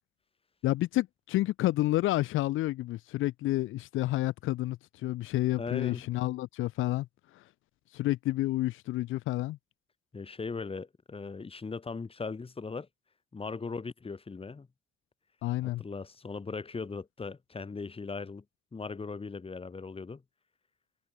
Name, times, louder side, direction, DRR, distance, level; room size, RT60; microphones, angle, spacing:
voice 1, 0.6-7.1 7.3-7.4 7.9-9.6 15.4-15.8, left 16 dB, 85° left, 1.2 m, -30 dB
voice 2, 5.6-6.0 10.1-12.9 13.3-14.7 15.6-18.4 18.7-20.2, left 4 dB, 30° left, 3.0 m, -39 dB
cardioid pair, 90°, 20 cm